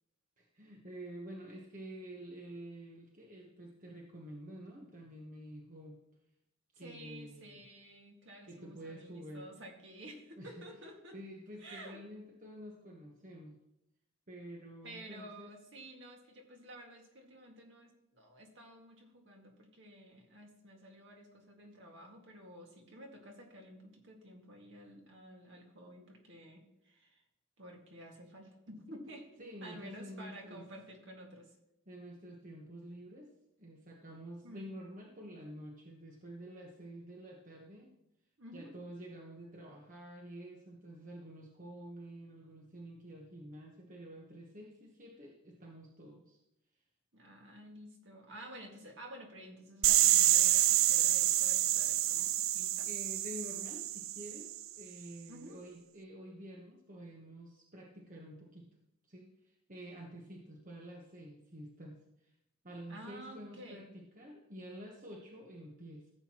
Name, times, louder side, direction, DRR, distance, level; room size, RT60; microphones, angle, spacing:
voice 1, 0.4-6.0 6.8-7.6 8.4-9.5 10.4-10.8 11.1-13.6 14.3-15.5 29.4-30.6 31.9-33.3 33.6-37.9 38.5-46.4 52.8-54.5 54.7-58.7 59.1-62.3 62.6-66.1, right 1 dB, 40° right, 0 dB, 1.2 m, -49 dB
voice 2, 6.8-11.2 11.6-12.0 14.8-27.2 27.6-29.3 29.6-31.5 34.4-34.6 38.4-38.7 47.1-52.9 55.3-55.6 62.9-63.8, equal, 65° right, 1 dB, 2.0 m, -51 dB
sound 1, 49.8-54.6, right 13 dB, 90° right, 0.4 m, -28 dB
15.0 x 8.1 x 3.0 m, 0.84 s
head